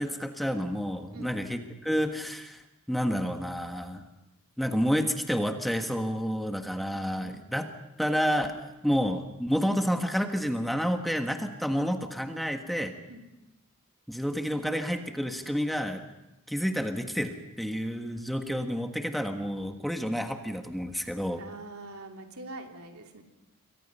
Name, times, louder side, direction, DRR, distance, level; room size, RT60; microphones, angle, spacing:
voice 1, 0.0-2.6 2.9-4.0 4.6-7.7 8.0-12.9 14.1-16.0 16.5-21.4, equal, ahead, 4 dB, 1.4 m, -29 dB
voice 2, 21.4-23.2, right 2 dB, 80° right, 3 dB, 2.8 m, -44 dB
27.5 x 23.5 x 5.5 m, 0.94 s
head